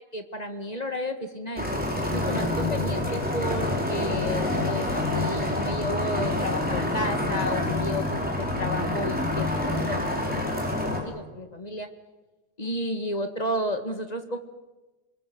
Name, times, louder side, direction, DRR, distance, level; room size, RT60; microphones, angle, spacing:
voice 1, 0.1-1.7 2.1-10.4 10.8-11.9 12.6-14.4, left 1 dB, 25° left, 6 dB, 2.1 m, -32 dB
sound 1, 1.6-11.0, left 1 dB, 5° right, 5.4 m, -27 dB
28.0 x 21.5 x 7.9 m, 1.1 s
omnidirectional pair, 1.7 m